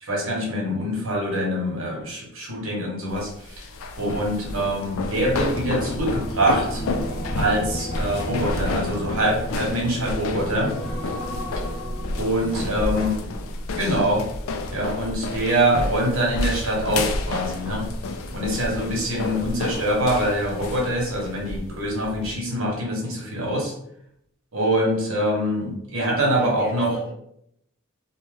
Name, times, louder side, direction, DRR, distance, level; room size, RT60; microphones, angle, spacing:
voice 1, 0.0-3.7 4.0-6.8 7.3-10.8 12.2-13.1 13.8-14.2 14.7-17.9 18.3-23.7 24.5-26.9, right 1 dB, 70° right, -2 dB, 1.0 m, -24 dB
sound 1, 3.1-22.3, left 2 dB, 70° left, 0.4 m, -30 dB
sound 2, 4.8-14.2 14.5-14.8, equal, 55° left, 0.7 m, -35 dB
voice 2, 12.5-13.1 14.6-14.9 26.3-27.1, right 1 dB, 10° right, -5 dB, 0.6 m, -37 dB
2.7 x 2.2 x 3.2 m, 0.73 s
head